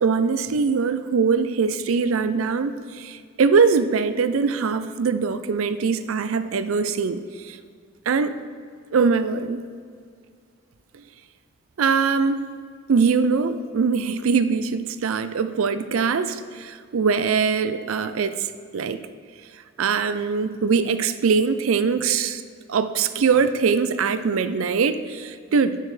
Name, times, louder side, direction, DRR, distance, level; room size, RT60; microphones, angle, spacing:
voice 1, 0.0-7.6 8.1-8.3 8.9-9.6 11.8-12.4 12.9-18.5 18.7-19.0 19.8-22.4 22.7-25.8, right 5 dB, 85° right, 11 dB, 0.4 m, -22 dB
10.5 x 6.4 x 3.3 m, 2.1 s
head